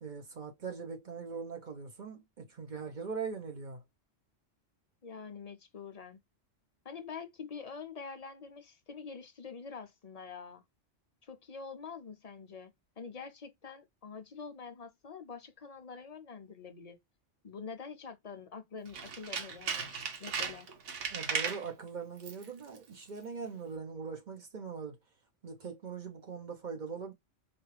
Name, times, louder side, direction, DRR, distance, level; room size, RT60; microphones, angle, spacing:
voice 1, 0.0-3.8 21.1-25.0 25.4-27.1, right 5 dB, 40° right, 1.0 m, -41 dB
voice 2, 5.0-6.2 6.8-10.6 11.2-12.7 13.0-17.0 17.4-20.7, left 5 dB, 50° left, 0.4 m, -46 dB
Tools, 18.9-21.7 22.2-22.5 22.8-22.9, right 6 dB, 75° right, 1.1 m, -36 dB
4.2 x 2.4 x 3.2 m
omnidirectional pair, 1.2 m